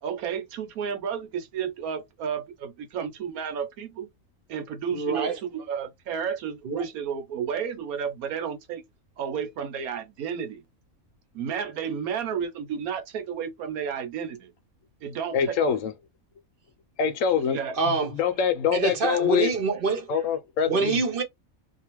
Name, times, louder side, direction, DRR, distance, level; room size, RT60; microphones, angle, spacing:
voice 1, 0.0-4.1 4.5-8.8 9.2-10.6 11.3-14.5 15.0-15.8 17.5-17.8, right 7 dB, 85° right, 1.2 m, -32 dB
voice 2, 4.9-5.4 6.6-6.8 17.8-18.1 18.7-20.1 20.7-21.2, right 4 dB, 45° right, 0.8 m, -25 dB
voice 3, 15.3-15.9 17.0-17.6 17.9-19.5 20.1-21.0, left 7 dB, 70° left, 0.9 m, -25 dB
2.8 x 2.3 x 3.0 m
omnidirectional pair, 1.5 m